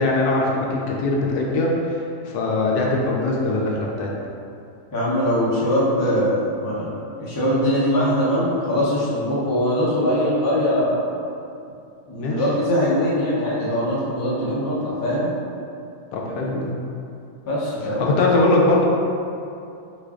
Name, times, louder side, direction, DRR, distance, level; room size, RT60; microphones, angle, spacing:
voice 1, 0.0-4.1 12.2-12.4 16.1-16.7 18.0-18.8, left 2 dB, 85° left, -2 dB, 1.1 m, -21 dB
voice 2, 4.9-11.0 12.1-15.3 17.5-18.1, equal, 30° left, -8 dB, 0.3 m, -22 dB
3.8 x 3.3 x 2.4 m, 2.6 s
omnidirectional pair, 1.6 m